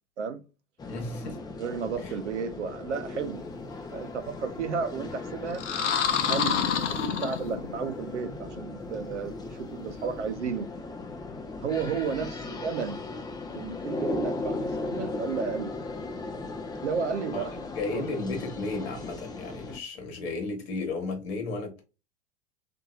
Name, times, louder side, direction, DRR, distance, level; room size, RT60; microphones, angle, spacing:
sound 1, 0.8-19.8, left 3 dB, 10° left, 0.5 m, -37 dB
voice 1, 0.9-1.5 2.0-2.1 17.3-17.4 17.7-21.8, left 3 dB, 60° left, 1.2 m, -34 dB
voice 2, 1.6-3.5 3.9-5.6 6.3-6.6 6.9-10.7 11.6-13.0 13.5-14.6 14.9-15.7 16.8-17.5 17.9-18.0, right 6 dB, 80° right, 0.6 m, -32 dB
sound 2, 5.5-7.9, left 7 dB, 85° left, 0.5 m, -27 dB
2.8 x 2.6 x 2.3 m
figure-of-eight pair, 85°, 35 cm